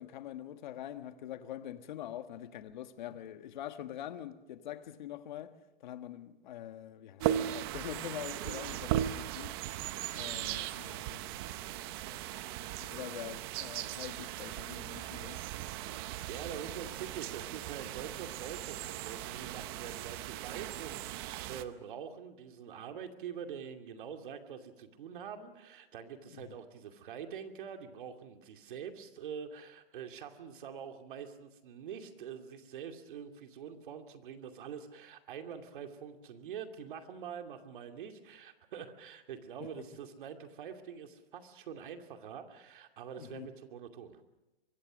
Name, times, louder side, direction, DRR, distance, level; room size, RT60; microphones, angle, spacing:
voice 1, 0.0-5.5 5.8-9.6 10.1-11.2 12.1-12.2 12.8-15.4 26.3-26.6 39.6-39.7 43.2-43.5, left 11 dB, 50° left, 1.5 m, -44 dB
sound 1, 7.2-21.6, right 12 dB, 25° right, 0.7 m, -38 dB
voice 2, 16.3-44.2, right 7 dB, 60° right, 2.6 m, -45 dB
24.0 x 23.0 x 6.3 m
hypercardioid pair, 165°, 29 cm